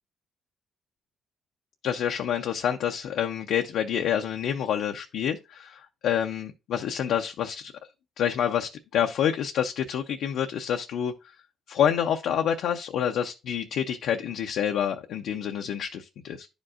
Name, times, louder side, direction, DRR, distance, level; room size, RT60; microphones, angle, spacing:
voice 1, 1.8-7.7 8.2-11.1 11.7-16.5, left 9 dB, 80° left, 0.5 m, -27 dB
11.0 x 5.1 x 2.4 m
cardioid pair, 90°, 0 cm